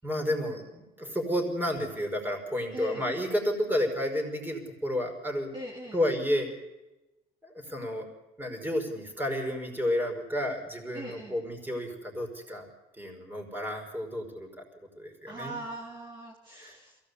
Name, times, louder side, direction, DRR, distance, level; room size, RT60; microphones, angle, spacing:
voice 1, 0.0-5.5 5.9-6.5 7.4-8.1 8.4-12.7 13.0-14.6 15.0-15.6 16.5-16.8, equal, 10° right, 3 dB, 5.4 m, -31 dB
voice 2, 2.7-3.1 5.5-6.0 10.9-11.4 15.3-17.0, right 1 dB, 30° right, -2 dB, 3.6 m, -40 dB
22.5 x 17.0 x 8.5 m, 1.0 s
cardioid pair, 110°, 17 cm